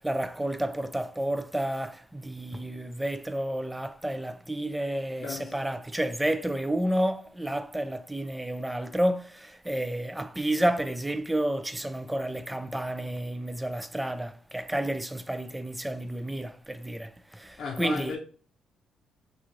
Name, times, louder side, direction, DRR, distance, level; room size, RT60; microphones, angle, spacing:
voice 1, 0.0-18.2, right 1 dB, 5° right, 0.3 m, -30 dB
voice 2, 5.2-5.6 17.6-18.2, left 4 dB, 60° left, 0.6 m, -34 dB
3.0 x 2.4 x 3.8 m
cardioid pair, 90°, 0 cm